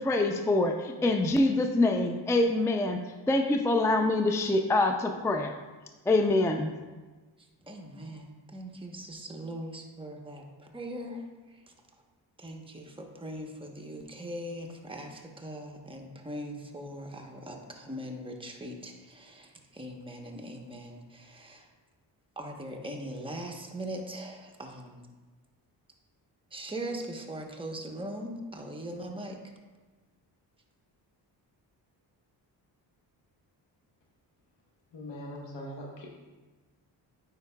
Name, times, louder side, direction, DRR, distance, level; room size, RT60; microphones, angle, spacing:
voice 1, 0.0-3.0 3.3-5.5 6.1-6.7, left 2 dB, 5° left, 5 dB, 0.4 m, -25 dB
voice 2, 7.7-11.2 12.4-21.6 22.4-25.0 26.5-29.4, right 1 dB, 10° right, 1 dB, 1.0 m, -40 dB
voice 3, 34.9-36.1, equal, 75° left, 0 dB, 1.1 m, -41 dB
9.3 x 4.7 x 2.3 m, 1.3 s
cardioid pair, 60°, 44 cm